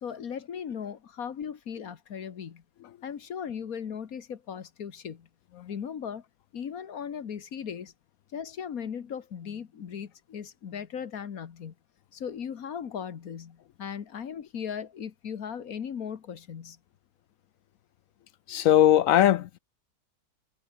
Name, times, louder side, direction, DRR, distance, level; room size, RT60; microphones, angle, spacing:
voice 1, 0.0-2.6 3.0-5.3 5.7-6.2 6.5-7.9 8.3-11.7 12.1-16.8, left 7 dB, 55° left, 1.7 m, -37 dB
voice 2, 18.5-19.6, left 12 dB, 70° left, 0.8 m, -20 dB
omnidirectional pair, 1.9 m